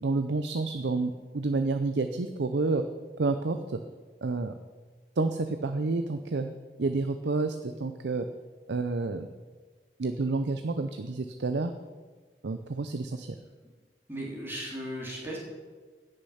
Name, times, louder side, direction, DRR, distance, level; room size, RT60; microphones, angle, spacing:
voice 1, 0.0-2.8 3.2-3.8 4.2-4.5 5.2-8.3 8.7-9.3 10.0-11.7 12.4-13.3, right 3 dB, 75° right, 8 dB, 0.6 m, -29 dB
voice 2, 14.1-15.4, equal, 15° right, -5 dB, 3.2 m, -36 dB
16.0 x 6.6 x 5.8 m, 1.4 s
head